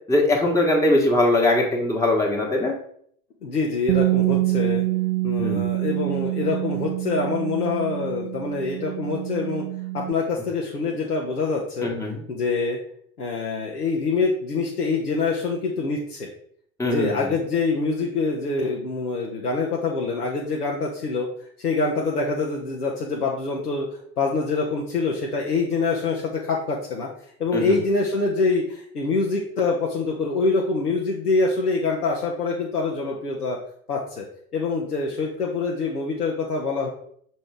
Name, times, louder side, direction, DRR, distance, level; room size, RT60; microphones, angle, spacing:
voice 1, 0.1-2.7 5.4-5.6 11.8-12.2 16.8-17.3 27.5-27.7, left 1 dB, 5° left, -1 dB, 1.1 m, -21 dB
voice 2, 3.4-4.8 5.2-9.6 9.9-11.9 12.3-12.8 13.2-16.3 16.8-21.3 21.6-23.9 24.2-27.1 27.4-33.6 33.9-34.3 34.5-36.9, left 3 dB, 85° left, -2 dB, 0.8 m, -25 dB
Bass guitar, 3.9-10.1, right 19 dB, 45° right, 0.4 m, -26 dB
6.2 x 4.5 x 3.4 m, 0.63 s
figure-of-eight pair, 70°, 44 cm